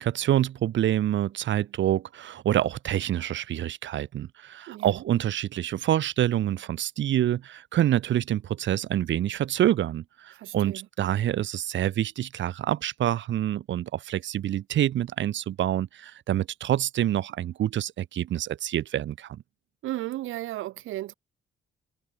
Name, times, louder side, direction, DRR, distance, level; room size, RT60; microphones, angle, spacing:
voice 1, 0.0-19.4, right 12 dB, 70° right, 1.4 m, -27 dB
voice 2, 4.7-5.0 10.4-10.9 19.8-21.1, right 15 dB, 85° right, 2.1 m, -34 dB
cardioid pair, 90°, 20 cm